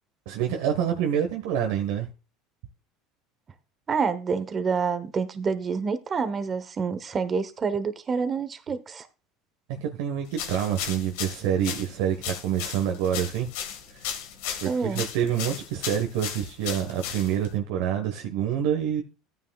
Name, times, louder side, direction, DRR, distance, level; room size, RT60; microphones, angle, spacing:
voice 1, 0.3-2.1 9.7-13.5 13.9-14.1 14.6-19.0, right 9 dB, 75° right, 1.3 m, -27 dB
voice 2, 3.9-9.1 14.6-15.1, right 5 dB, 30° right, 1.0 m, -27 dB
sound 1, 10.3-17.6, left 8 dB, 80° left, 1.7 m, -36 dB
13.5 x 9.5 x 2.3 m
supercardioid pair, 95°, 0 cm